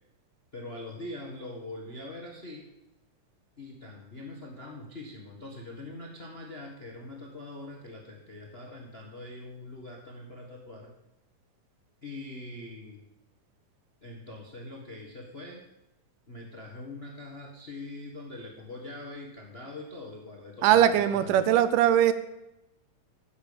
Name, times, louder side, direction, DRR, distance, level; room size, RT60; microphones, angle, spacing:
voice 1, 0.5-2.7 3.6-10.9 12.0-13.0 14.0-15.6 16.3-21.6, left 2 dB, 35° left, 1 dB, 1.0 m, -43 dB
voice 2, 20.6-22.1, right 11 dB, 85° right, 13 dB, 2.4 m, -21 dB
10.5 x 8.1 x 8.6 m, 0.90 s
omnidirectional pair, 3.8 m